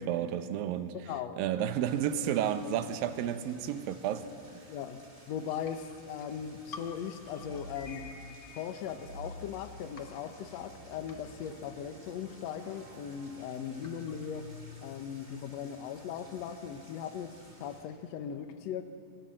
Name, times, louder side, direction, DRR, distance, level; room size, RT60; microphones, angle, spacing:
voice 1, 0.0-1.0 1.4-4.6, right 10 dB, 75° right, 2.6 m, -32 dB
voice 2, 1.1-1.4 4.7-8.2 8.5-14.5 14.8-18.8, left 8 dB, 65° left, 1.7 m, -39 dB
sound 1, 1.8-17.8, equal, 10° right, 2.8 m, -56 dB
sound 2, 5.6-9.6 10.0-14.4, left 4 dB, 85° left, 0.9 m, -53 dB
sound 3, 7.1-8.1 8.9-14.9, equal, 55° right, 3.5 m, -50 dB
27.5 x 22.5 x 7.6 m
omnidirectional pair, 4.4 m